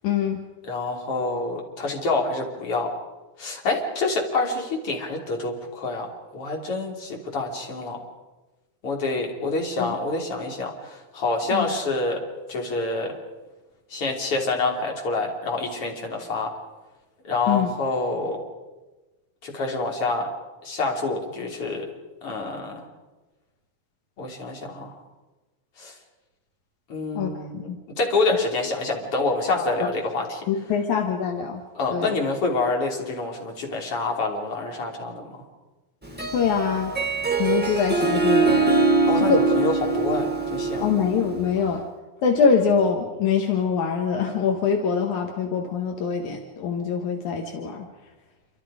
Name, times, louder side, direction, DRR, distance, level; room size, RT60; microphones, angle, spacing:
voice 1, 0.0-0.4 9.8-9.9 11.5-11.7 17.5-17.7 27.1-27.8 29.8-29.9 30.5-31.6 31.9-32.1 36.3-36.9 37.4-38.7 39.2-39.5 40.8-41.8 42.2-47.9, left 6 dB, 75° left, 3 dB, 3.0 m, -24 dB
voice 2, 0.6-2.9 3.4-6.1 6.3-8.0 8.8-12.2 12.5-13.1 13.9-16.5 17.2-18.4 19.4-20.3 20.6-21.9 22.2-22.9 24.2-25.0 25.8-25.9 26.9-30.4 31.8-35.5 39.0-41.0 41.6-41.8, left 3 dB, 50° left, 0 dB, 4.2 m, -27 dB
Harp, 36.0-41.6, right 3 dB, 10° right, 0.5 m, -23 dB
28.0 x 25.5 x 5.0 m, 1.1 s
omnidirectional pair, 3.4 m